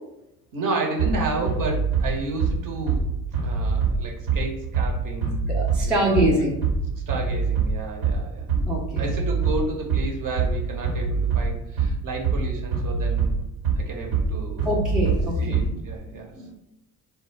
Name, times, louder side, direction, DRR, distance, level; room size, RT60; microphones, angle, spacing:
voice 1, 0.5-3.0 3.4-5.4 5.8-6.5 7.1-8.5 9.0-13.3 13.8-14.7 15.4-16.3, right 3 dB, 40° right, 1 dB, 0.7 m, -31 dB
Bass drum, 1.0-16.0, right 5 dB, 75° right, 1.1 m, -25 dB
voice 2, 5.5-6.6 8.6-9.0 14.6-15.8 16.1-16.5, equal, ahead, -3 dB, 0.4 m, -24 dB
2.1 x 2.1 x 3.2 m, 0.86 s
hypercardioid pair, 65°, 49 cm